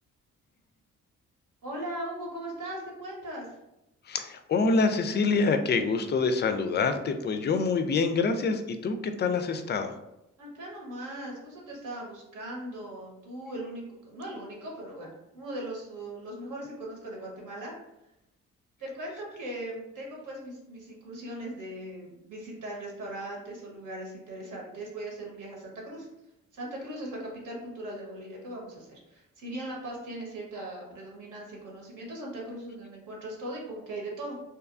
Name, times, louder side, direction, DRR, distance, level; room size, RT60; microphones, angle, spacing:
voice 1, 1.6-3.5 10.4-17.7 18.8-26.1 26.5-34.4, right 1 dB, 65° right, -2 dB, 1.1 m, -39 dB
voice 2, 4.1-10.0, left 4 dB, 30° left, 8 dB, 0.4 m, -26 dB
2.7 x 2.2 x 2.5 m, 0.88 s
hypercardioid pair, 50°, 34 cm